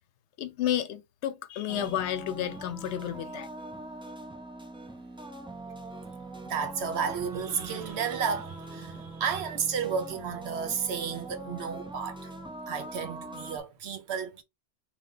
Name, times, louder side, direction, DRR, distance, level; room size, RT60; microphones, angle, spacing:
voice 1, 0.4-3.5, left 11 dB, 85° left, 0.9 m, -31 dB
sound 1, 1.7-13.6, right 2 dB, 5° right, 0.5 m, -42 dB
voice 2, 6.4-12.3 12.7-14.4, right 6 dB, 75° right, 1.0 m, -32 dB
3.3 x 2.6 x 3.9 m
omnidirectional pair, 1.1 m